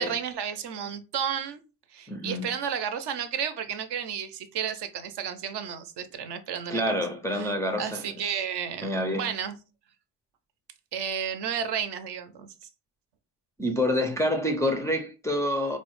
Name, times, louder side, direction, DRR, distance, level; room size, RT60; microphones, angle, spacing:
voice 1, 0.0-1.6 1.9-6.9 7.3-7.5 7.8-9.6 10.9-12.7, right 8 dB, 60° right, 0.6 m, -32 dB
voice 2, 2.1-2.5 6.7-8.4 8.8-9.3 13.6-15.8, left 1 dB, 5° left, 0.3 m, -27 dB
4.2 x 2.1 x 3.0 m
cardioid pair, 100°, 46 cm